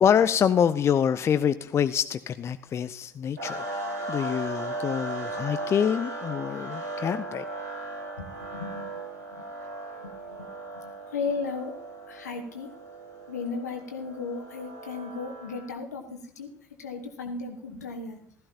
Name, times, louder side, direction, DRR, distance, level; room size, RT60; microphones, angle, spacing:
voice 1, 0.0-3.8 4.1-7.4, left 8 dB, 30° left, 12 dB, 0.5 m, -25 dB
sound 1, 3.4-15.7, right 2 dB, 80° right, 2.6 m, -37 dB
voice 2, 8.2-9.0 9.3-9.4 10.8-11.7 12.1-12.7 13.3-16.5 16.8-18.2, left 4 dB, 75° left, 5 dB, 1.3 m, -35 dB
15.5 x 13.0 x 2.9 m, 0.62 s
figure-of-eight pair, 65°, 9 cm